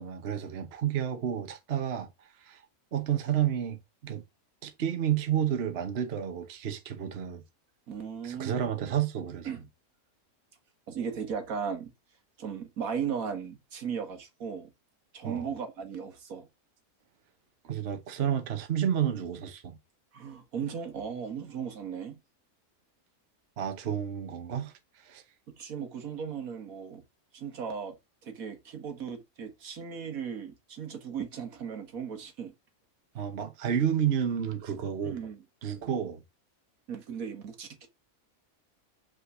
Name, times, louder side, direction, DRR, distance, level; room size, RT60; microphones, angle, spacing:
voice 1, 0.0-2.6 2.9-4.2 4.6-7.4 8.2-9.5 15.2-15.5 17.6-19.8 23.6-25.2 33.1-35.2 35.6-36.2, right 9 dB, 50° right, 1.1 m, -31 dB
voice 2, 7.9-8.7 9.5-9.6 10.9-11.9 12.4-14.7 15.1-16.5 20.1-22.2 25.6-27.0 27.3-28.0 28.2-32.5 35.0-35.4 36.9-37.9, right 7 dB, 70° right, 1.7 m, -36 dB
5.6 x 3.9 x 6.1 m
omnidirectional pair, 1.6 m